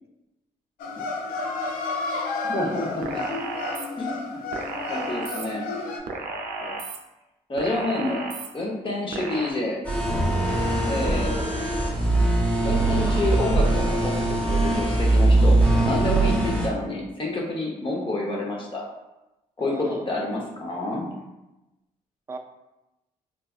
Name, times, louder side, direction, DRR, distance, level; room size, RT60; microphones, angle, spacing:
sound 1, 0.8-6.0, left 3 dB, 85° left, 0.4 m, -31 dB
voice 1, 2.4-3.2 4.0-4.4 4.9-5.7 7.5-8.2 8.5-9.8 10.8-11.3 12.6-18.8 19.6-21.1, left 2 dB, 35° left, -2 dB, 0.9 m, -28 dB
sound 2, 3.0-3.9 4.5-5.5 6.1-7.0 7.6-8.5 9.1-9.5, right 3 dB, 85° right, 0.4 m, -33 dB
sound 3, 9.8-16.7, right 2 dB, 10° left, 1.0 m, -21 dB
voice 2, 10.9-11.7 17.9-18.0 19.6-20.1 22.3-22.4, right 3 dB, 20° right, 5 dB, 0.4 m, -39 dB
4.0 x 2.3 x 2.3 m, 0.98 s
cardioid pair, 70°, 15 cm